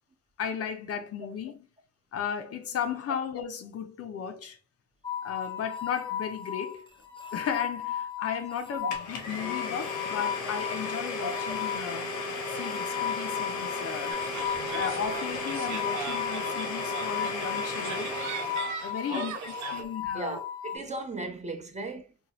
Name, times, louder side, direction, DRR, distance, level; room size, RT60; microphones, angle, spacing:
voice 1, 0.4-1.6 2.1-4.6 5.2-6.9 7.3-12.1 12.5-14.2 14.7-18.1 18.8-20.4, left 7 dB, 55° left, 0.5 m, -35 dB
sound 1, 5.0-20.8, left 9 dB, 15° left, 0.7 m, -36 dB
Domestic sounds home sounds, 8.9-18.9, left 3 dB, 85° left, 0.7 m, -35 dB
sound 2, 14.1-19.8, right 7 dB, 70° right, 0.6 m, -39 dB
voice 2, 19.8-20.4 20.7-22.1, right 2 dB, 25° right, 0.7 m, -36 dB
2.7 x 2.2 x 3.0 m
cardioid pair, 90°, 30 cm